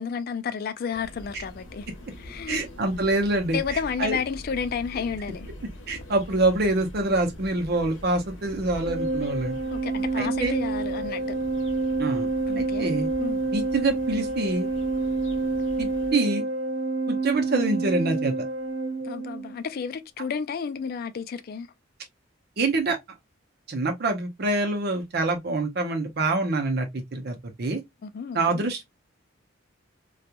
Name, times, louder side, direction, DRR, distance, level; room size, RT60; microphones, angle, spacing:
voice 1, 0.0-1.9 2.2-2.7 3.5-5.5 9.7-11.4 12.5-12.9 13.2-13.4 19.0-21.7 28.0-28.6, left 6 dB, 50° left, 0.3 m, -31 dB
sound 1, 0.9-16.1, left 1 dB, 70° left, 0.9 m, -43 dB
voice 2, 2.5-4.2 5.9-9.6 10.2-10.5 12.0-12.3 12.6-13.1 13.5-14.7 15.8-16.4 17.1-18.3 22.6-23.0 23.7-27.8 28.3-28.9, right 2 dB, 50° right, 0.6 m, -26 dB
Organ, 8.8-19.5, right 3 dB, 80° right, 0.9 m, -28 dB
2.8 x 2.3 x 2.2 m
head